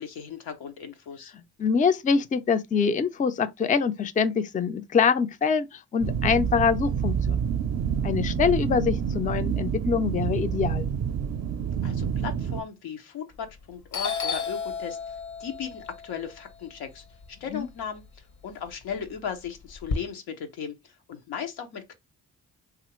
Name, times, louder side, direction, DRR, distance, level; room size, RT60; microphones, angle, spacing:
voice 1, 0.0-1.3 11.8-21.9, left 7 dB, 85° left, 0.7 m, -37 dB
voice 2, 1.3-7.4 8.0-10.9 17.5-17.7, left 6 dB, 20° left, 0.4 m, -25 dB
sound 1, 6.0-12.6, right 7 dB, 45° right, 0.5 m, -28 dB
Doorbell, 13.3-13.6 13.9-18.1 18.4-20.0, left 5 dB, 55° left, 0.7 m, -33 dB
2.8 x 2.4 x 3.0 m
supercardioid pair, 50°, 37 cm